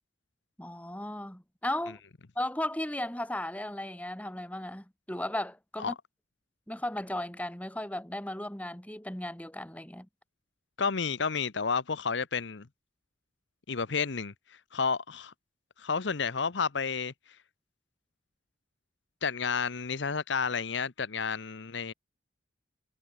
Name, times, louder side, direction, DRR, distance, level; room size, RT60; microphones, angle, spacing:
voice 1, 0.6-2.0 2.4-5.9 6.7-10.1, left 1 dB, 10° left, 2.1 m, -35 dB
voice 2, 10.8-12.7 13.7-15.3 15.8-17.1 19.2-21.9, left 5 dB, 65° left, 0.9 m, -31 dB
head